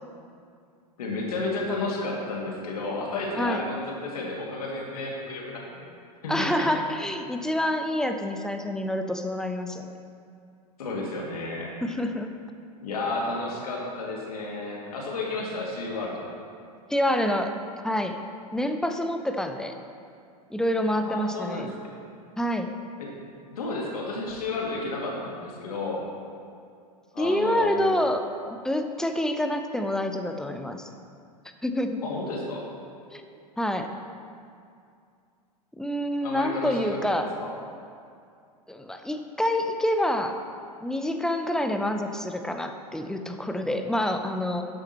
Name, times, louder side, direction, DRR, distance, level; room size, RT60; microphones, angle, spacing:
voice 1, 1.0-5.9 6.2-6.7 10.8-11.7 12.8-16.2 20.9-21.9 23.0-23.1 23.5-26.0 27.1-28.0 32.0-32.6 36.2-37.5, left 2 dB, 70° left, -2 dB, 2.4 m, -32 dB
voice 2, 6.3-9.9 11.8-12.4 16.9-17.5 17.8-18.2 18.5-19.8 20.5-21.7 22.4-22.7 27.2-28.2 28.6-30.9 31.6-32.0 33.1-33.3 33.6-33.9 35.8-37.4 38.7-40.4 40.8-44.6, left 1 dB, 5° left, 6 dB, 0.6 m, -27 dB
12.5 x 8.5 x 3.1 m, 2.4 s
figure-of-eight pair, 90°, 20 cm